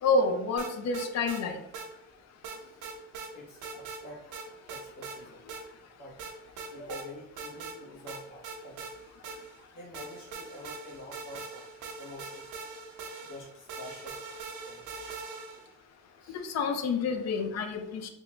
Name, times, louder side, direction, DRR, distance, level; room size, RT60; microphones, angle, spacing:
voice 1, 0.0-1.6 16.3-18.1, left 3 dB, 60° left, 6 dB, 0.6 m, -28 dB
sound 1, 0.6-1.4 1.7-1.9 2.4-3.3 3.6-4.0 4.3-5.2 5.5-5.6 6.2-7.0 7.4-7.8 8.1-9.6 9.9-15.7, right 4 dB, 85° right, 0.7 m, -42 dB
voice 2, 3.3-4.2 4.7-5.5 5.9-6.3 6.7-8.9 9.7-11.7 12.0-12.5 13.3-14.2 14.6-15.1 16.2-16.4, left 1 dB, 80° left, -3 dB, 1.3 m, -47 dB
3.6 x 2.4 x 3.0 m, 0.80 s
cardioid pair, 90°, 30 cm